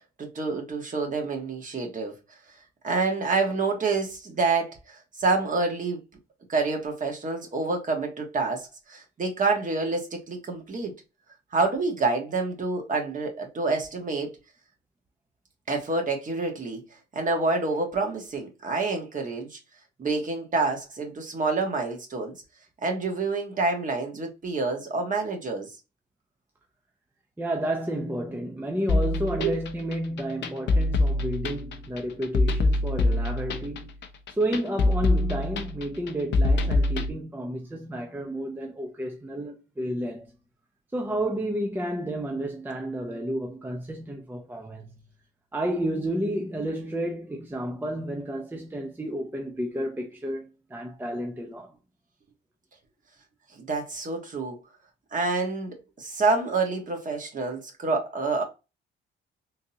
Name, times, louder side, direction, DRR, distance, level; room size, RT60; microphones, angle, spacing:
voice 1, 0.2-2.1 2.8-6.0 6.5-10.9 11.5-14.3 15.7-16.8 17.1-19.6 20.0-22.3 22.8-25.7 29.4-29.5 53.5-54.6 55.1-58.4, right 3 dB, 40° right, 1.3 m, -27 dB
voice 2, 27.4-33.9 34.3-40.3 40.9-45.0 45.5-51.7, right 1 dB, 10° right, 0.6 m, -31 dB
sound 1, 28.9-37.1, left 2 dB, 65° left, 0.6 m, -24 dB
3.7 x 2.7 x 2.7 m
cardioid pair, 90°, 20 cm